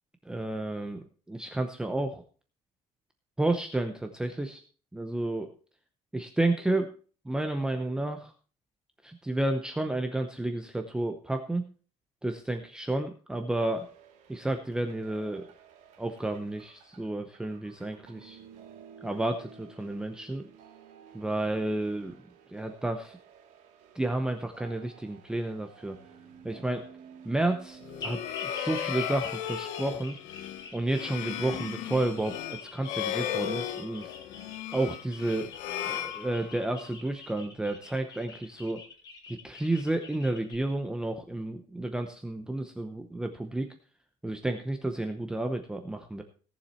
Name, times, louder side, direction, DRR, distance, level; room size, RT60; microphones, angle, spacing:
voice 1, 0.2-2.2 3.4-4.6 4.9-5.5 6.1-6.9 7.2-8.3 9.0-11.7 12.2-13.9 14.3-15.5 16.0-18.4 19.0-20.5 21.1-22.2 22.5-23.2 23.9-26.0 26.4-26.8 27.2-30.2 30.7-34.1 34.7-35.5 35.8-38.8 39.3-43.7 44.2-46.2, right 2 dB, 5° right, 6 dB, 0.8 m, -31 dB
sound 1, 13.5-29.4, right 7 dB, 70° right, 2.4 m, -53 dB
sound 2, 27.8-36.8, left 11 dB, 75° left, 1.0 m, -36 dB
sound 3, 28.0-40.5, left 4 dB, 30° left, 3.1 m, -46 dB
17.5 x 7.2 x 4.3 m, 0.40 s
cardioid pair, 160°, 13 cm